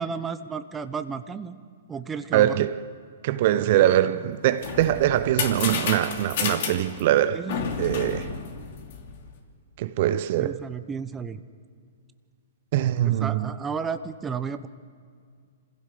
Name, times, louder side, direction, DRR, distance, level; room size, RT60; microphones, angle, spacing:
voice 1, 0.0-1.6 1.9-2.6 7.3-7.7 10.4-11.4 13.0-14.7, right 6 dB, 15° right, 0.9 m, -32 dB
voice 2, 2.3-2.8 3.2-7.4 7.8-8.3 9.8-10.6 12.7-13.5, right 12 dB, 50° right, 0.7 m, -22 dB
sound 1, 4.3-9.3, left 6 dB, 60° left, 2.8 m, -31 dB
26.5 x 16.0 x 6.8 m
hypercardioid pair, 125°, 0 cm